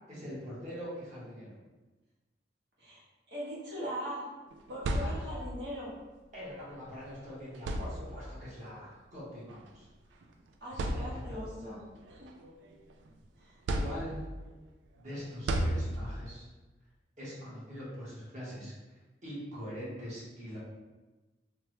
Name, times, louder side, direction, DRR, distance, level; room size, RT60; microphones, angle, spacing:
voice 1, 0.1-1.5 5.0-5.1 6.3-9.9 10.7-11.8 13.7-14.2 15.0-16.4 17.2-18.7 19.2-20.6, equal, 45° right, -8 dB, 1.2 m, -43 dB
voice 2, 3.3-4.2 4.7-5.9 10.6-11.8 12.1-12.3 13.4-13.6, equal, 65° right, -7 dB, 1.1 m, -40 dB
sound 1, 4.5-5.6 6.9-7.0 7.5-8.4 9.5-9.7 10.2-10.3 10.7-11.5 12.0-13.1 13.7-14.5 15.5-16.4, right 1 dB, 85° right, 0.3 m, -34 dB
3.3 x 2.1 x 3.1 m, 1.2 s
head